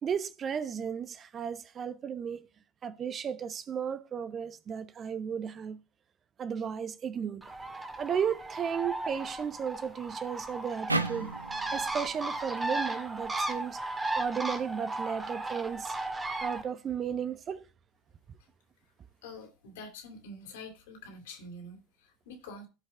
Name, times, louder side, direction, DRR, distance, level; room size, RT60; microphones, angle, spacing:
voice 1, 0.0-2.5 2.8-5.8 6.4-7.5 8.0-11.4 11.7-13.8 14.1-16.0 16.4-17.6, right 7 dB, 30° right, 0.9 m, -34 dB
Bird, 7.4-16.6, right 2 dB, 15° right, 1.9 m, -36 dB
sound 1, 10.9-14.1, right 2 dB, 85° right, 0.7 m, -36 dB
voice 2, 19.2-22.7, left 2 dB, 65° left, 3.3 m, -46 dB
16.5 x 5.6 x 3.6 m
figure-of-eight pair, 70°, 0 cm